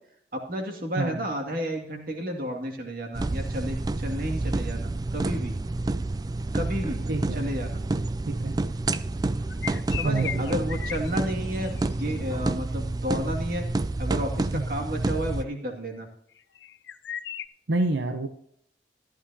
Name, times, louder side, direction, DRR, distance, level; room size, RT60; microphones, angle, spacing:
voice 1, 0.3-5.5 6.5-7.0 7.4-7.8 10.0-13.7 14.0-16.1, equal, 55° right, 2 dB, 2.2 m, -32 dB
sound 1, 3.1-15.4, right 2 dB, 20° right, 0.3 m, -29 dB
voice 2, 7.1-7.5 8.3-8.6 10.0-10.6 14.5-14.6 17.7-18.3, right 2 dB, 90° right, 6 dB, 0.8 m, -28 dB
sound 2, 9.4-12.1 16.3-17.5, left 9 dB, 80° left, 0.5 m, -37 dB
14.0 x 11.5 x 2.8 m, 0.66 s
head